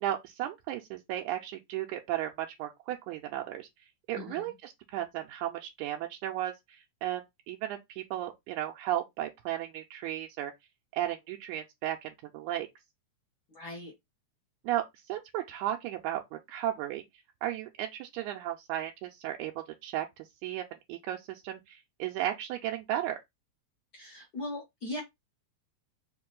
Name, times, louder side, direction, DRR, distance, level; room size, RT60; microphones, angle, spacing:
voice 1, 0.0-3.7 4.1-10.5 10.9-12.7 14.7-14.8 15.1-17.0 17.4-19.5 19.8-23.2, right 12 dB, 85° right, 2.0 m, -35 dB
voice 2, 4.1-4.5 13.5-13.9 23.9-25.0, left 2 dB, 55° left, 1.1 m, -39 dB
4.8 x 2.6 x 3.7 m
omnidirectional pair, 3.4 m